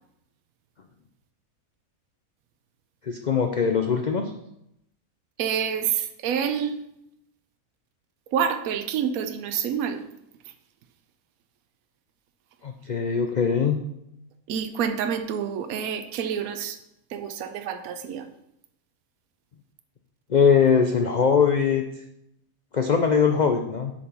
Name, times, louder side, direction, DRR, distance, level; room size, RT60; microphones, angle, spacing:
voice 1, 3.0-4.3 12.6-13.8 20.3-21.8 22.7-23.9, left 6 dB, 70° left, 5 dB, 0.4 m, -21 dB
voice 2, 5.4-6.8 8.3-10.0 14.5-16.8 17.1-18.3, right 8 dB, 75° right, 8 dB, 1.1 m, -27 dB
7.0 x 5.2 x 5.4 m, 0.79 s
omnidirectional pair, 1.6 m